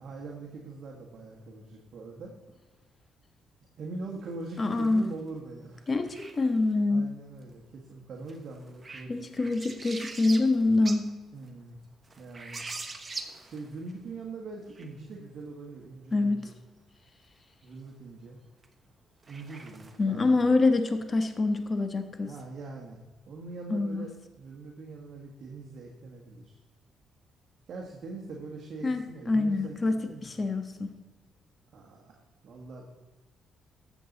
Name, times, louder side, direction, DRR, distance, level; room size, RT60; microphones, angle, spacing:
voice 1, 0.0-2.3 3.8-5.9 6.9-9.2 11.3-11.8 12.1-12.6 13.4-16.5 17.6-18.4 19.3-20.5 22.2-23.0 23.3-24.1 24.4-26.6 27.7-30.3 31.7-32.2 32.4-32.9, right 3 dB, 60° right, 0 dB, 1.5 m, -42 dB
sound 1, 4.5-5.2 6.1-6.7 8.3-11.1 11.4-11.5 12.0-13.9 14.7-14.9 18.6-18.7 19.2-20.3, right 3 dB, 30° right, 1.2 m, -42 dB
voice 2, 4.6-5.1 5.9-7.0 9.1-11.2 16.1-16.4 20.0-22.3 23.7-24.1 28.8-30.9, left 3 dB, 30° left, 7 dB, 1.3 m, -26 dB
13.5 x 7.3 x 4.1 m, 1.2 s
cardioid pair, 90°, 0 cm